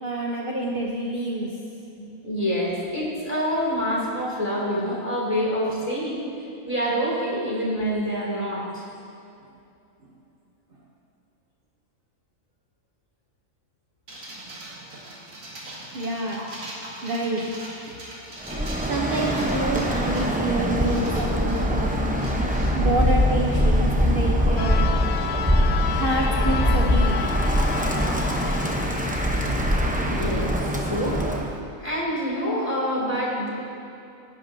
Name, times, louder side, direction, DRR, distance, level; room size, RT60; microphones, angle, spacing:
voice 1, 0.0-1.5 15.9-16.4 17.0-17.4 17.9-18.0 18.9-22.0 22.7-25.0 25.9-27.2, right 1 dB, 45° right, -2 dB, 1.0 m, -27 dB
voice 2, 2.0-6.2 6.6-8.8 14.7-15.2 18.5-18.6 29.8-31.2 31.8-33.5, equal, 25° left, -5 dB, 2.7 m, -27 dB
sound 1, 14.1-23.6, right 1 dB, 70° right, 2.2 m, -41 dB
Bird, 18.4-31.5, equal, 10° right, 0.6 m, -23 dB
sound 2, 24.6-29.8, left 9 dB, 85° left, 1.0 m, -32 dB
18.0 x 10.5 x 2.7 m, 2.6 s
omnidirectional pair, 1.4 m